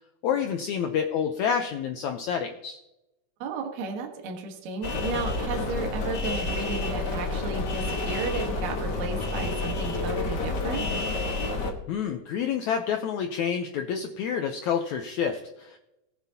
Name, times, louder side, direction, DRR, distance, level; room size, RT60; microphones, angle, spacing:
voice 1, 0.2-2.8 11.9-15.8, left 7 dB, 75° left, 5 dB, 1.7 m, -28 dB
voice 2, 3.4-10.9, right 4 dB, 60° right, 2 dB, 2.5 m, -34 dB
sound 1, 4.8-11.7, left 2 dB, 60° left, 1.1 m, -29 dB
18.0 x 8.1 x 2.8 m, 0.90 s
omnidirectional pair, 4.1 m